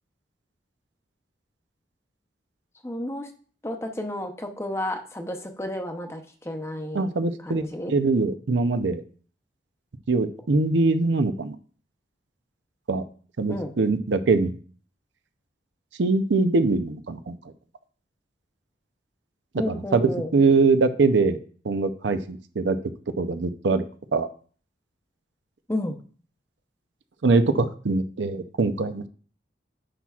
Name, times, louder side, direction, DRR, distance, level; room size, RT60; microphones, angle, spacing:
voice 1, 2.8-3.3 3.6-7.1 7.4-7.9 13.5-13.7 19.5-20.3 25.7-26.0, left 1 dB, 15° left, 5 dB, 0.7 m, -31 dB
voice 2, 6.9-9.0 10.1-11.5 12.9-13.0 13.4-14.5 16.0-17.4 19.7-21.4 21.6-22.8 23.2-23.8 24.1-24.3 27.2-29.1, right 3 dB, 75° right, 10 dB, 0.6 m, -22 dB
10.0 x 5.8 x 2.4 m, 0.43 s
head